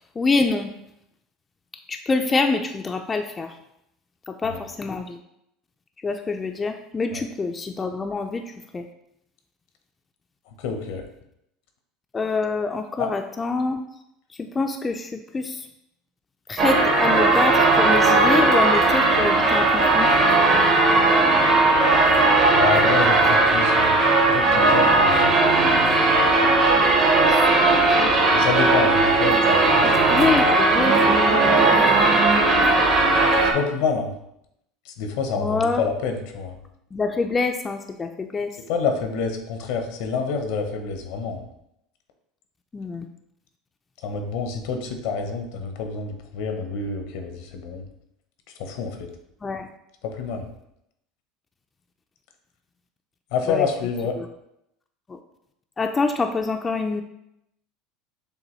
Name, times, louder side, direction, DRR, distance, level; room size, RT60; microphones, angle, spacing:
voice 1, 0.2-0.7 1.9-3.5 4.3-5.2 6.0-8.9 12.1-13.8 14.4-15.7 16.5-20.1 27.2-28.1 30.1-32.0 35.4-35.8 36.9-38.5 42.7-43.1 49.4-49.7 53.5-53.7 54.2-54.3 55.1-55.2 55.8-57.0, left 4 dB, 20° left, 5 dB, 0.3 m, -26 dB
voice 2, 10.6-11.0 13.0-13.1 22.5-25.7 28.3-30.1 33.4-34.1 34.8-36.6 38.7-41.4 44.0-47.8 48.6-49.1 50.0-50.5 53.3-54.2, left 5 dB, 75° left, 5 dB, 0.7 m, -28 dB
sound 1, 16.6-33.5, right 2 dB, 45° right, 0.9 m, -17 dB
6.6 x 2.3 x 3.1 m, 0.80 s
supercardioid pair, 105°, 0 cm